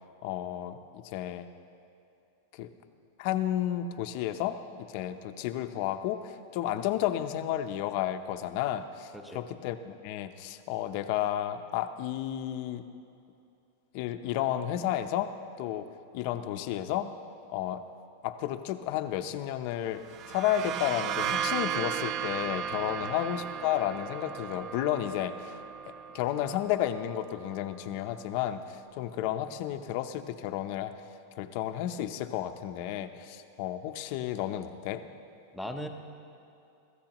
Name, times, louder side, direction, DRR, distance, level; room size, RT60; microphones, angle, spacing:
voice 1, 0.2-1.5 2.5-2.7 3.2-12.8 13.9-15.3 15.6-15.9 16.1-17.1 17.5-17.8 18.2-20.0 20.3-25.6 26.1-30.9 31.4-35.0, left 11 dB, 50° left, 8 dB, 0.7 m, -32 dB
voice 2, 9.1-9.4 22.8-23.1 35.5-35.9, equal, ahead, 3 dB, 0.9 m, -39 dB
sound 1, 20.0-27.6, right 8 dB, 35° right, 0.4 m, -35 dB
24.5 x 14.0 x 3.0 m, 2.6 s
supercardioid pair, 155°, 0 cm